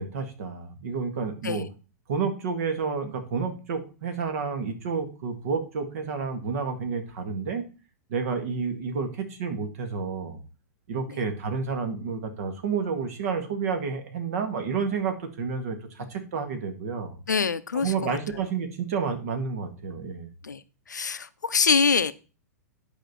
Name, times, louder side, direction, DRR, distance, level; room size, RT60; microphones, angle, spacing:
voice 1, 0.0-1.7 2.1-7.6 8.1-10.4 10.9-17.2 17.7-20.3, right 5 dB, 55° right, 7 dB, 1.9 m, -30 dB
voice 2, 17.3-18.2 20.4-20.6 20.9-22.1, left 5 dB, 80° left, 14 dB, 0.6 m, -24 dB
10.0 x 5.2 x 4.3 m, 0.33 s
figure-of-eight pair, 105°, 10 cm